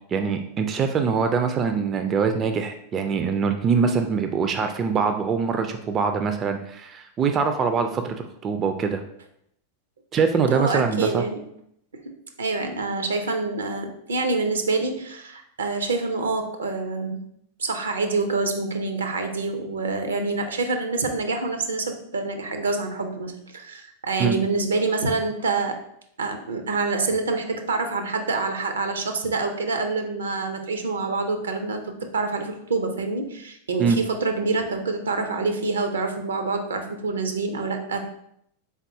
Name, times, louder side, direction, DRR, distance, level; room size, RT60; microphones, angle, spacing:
voice 1, 0.1-8.1 8.4-9.0 10.1-11.2 24.2-24.4 33.8-34.0, right 5 dB, 30° right, 7 dB, 0.3 m, -23 dB
voice 2, 10.5-11.4 12.0-12.1 12.4-17.2 17.6-25.8 26.2-38.0, right 3 dB, 75° right, 5 dB, 0.6 m, -26 dB
3.9 x 3.5 x 2.7 m, 0.73 s
figure-of-eight pair, 90°, 0 cm